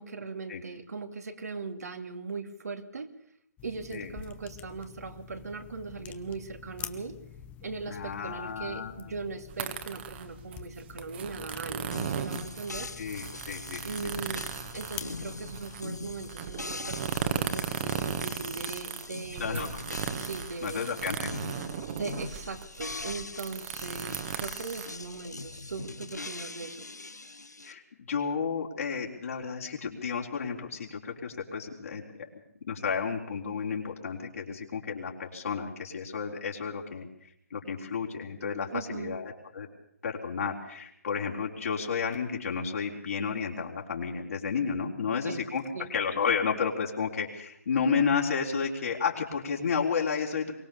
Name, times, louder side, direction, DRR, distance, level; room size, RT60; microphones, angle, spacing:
voice 1, 0.0-3.1 3.6-7.2 7.6-12.9 13.8-19.7 20.2-20.8 21.9-26.9 38.7-39.2 45.2-45.5 45.7-45.9, right 4 dB, 70° right, 7 dB, 2.6 m, -39 dB
sound 1, 3.6-16.3, left 9 dB, 15° left, 1.1 m, -47 dB
voice 2, 7.9-8.9 13.0-14.1 19.4-19.7 20.6-21.3 27.6-27.8 28.1-32.0 32.7-37.1 37.5-39.7 40.0-50.5, left 6 dB, 60° left, -2 dB, 3.9 m, -32 dB
sound 2, 9.5-25.6, right 8 dB, 40° right, 1.9 m, -36 dB
sound 3, 11.9-27.7, left 3 dB, 90° left, 1.4 m, -42 dB
23.0 x 19.5 x 7.0 m, 0.71 s
figure-of-eight pair, 140°, 9 cm